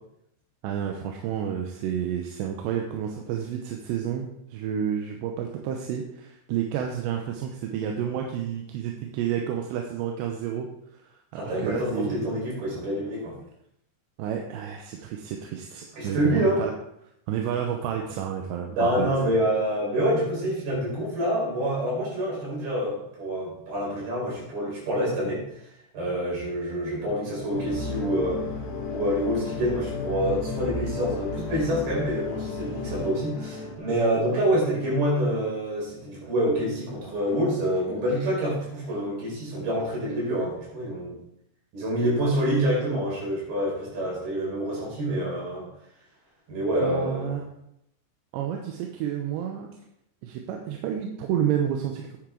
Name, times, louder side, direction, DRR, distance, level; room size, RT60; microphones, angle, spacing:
voice 1, 0.6-10.7 11.1-12.3 14.2-16.7 17.3-19.1 46.8-47.5 48.3-49.7 50.2-52.2, right 9 dB, 85° right, 2 dB, 3.1 m, -30 dB
voice 2, 11.3-13.4 15.9-16.7 18.8-25.4 25.9-28.4 28.9-41.2 41.7-45.7 46.5-47.4, equal, 65° right, -5 dB, 6.5 m, -27 dB
sound 1, 27.5-33.8, left 4 dB, 80° left, 3.3 m, -33 dB
9.8 x 8.9 x 3.8 m, 0.78 s
omnidirectional pair, 4.9 m